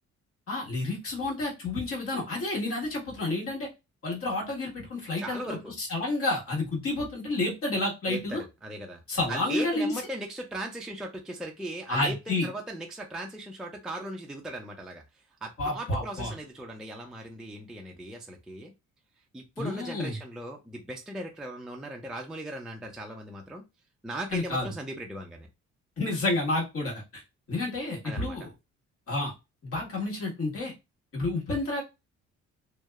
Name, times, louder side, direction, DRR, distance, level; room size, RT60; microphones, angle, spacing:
voice 1, 0.5-3.7 4.0-8.4 9.1-9.9 11.9-12.5 15.6-16.3 19.6-20.2 24.3-24.7 26.0-27.2 27.5-28.5 29.1-29.3 29.6-30.7 31.1-31.8, left 2 dB, 50° left, -2 dB, 1.4 m, -30 dB
voice 2, 5.2-5.7 8.1-9.0 9.3-15.0 15.4-18.7 19.3-23.6 24.0-25.5 28.0-28.4, right 1 dB, ahead, 1 dB, 0.4 m, -38 dB
2.7 x 2.0 x 2.3 m, 0.24 s
cardioid pair, 90°, 30 cm